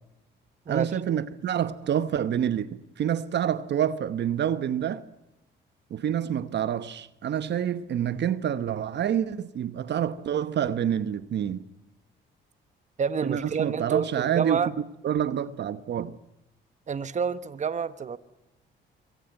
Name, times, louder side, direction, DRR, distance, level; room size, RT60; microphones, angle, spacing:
voice 1, 0.7-5.0 5.9-11.6 13.2-14.6 15.0-16.2, right 9 dB, 60° right, 1.0 m, -27 dB
voice 2, 13.0-14.7 16.9-18.2, right 6 dB, 35° right, 1.1 m, -28 dB
24.0 x 17.5 x 9.3 m
cardioid pair, 90°, 20 cm